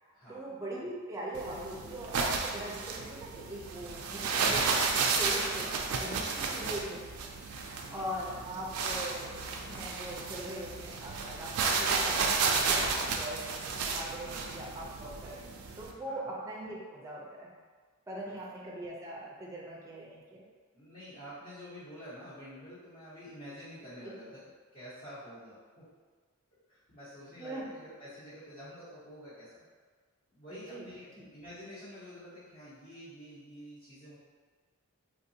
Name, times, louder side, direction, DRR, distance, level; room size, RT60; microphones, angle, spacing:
voice 1, 0.0-4.6 5.1-5.7 6.0-7.3 7.6-17.5 18.1-20.4 24.0-24.1 27.4-27.6 30.5-30.9 31.2-31.3, right 1 dB, 15° right, -4 dB, 0.5 m, -41 dB
sound 1, 1.3-15.9, right 4 dB, 75° right, 0.4 m, -32 dB
voice 2, 12.9-13.3 14.2-14.6 16.0-16.3 18.2-18.3 20.7-24.4 24.7-25.9 26.7-29.6 30.3-34.2, equal, 45° left, -17 dB, 1.3 m, -48 dB
3.7 x 2.6 x 2.7 m, 1.5 s
head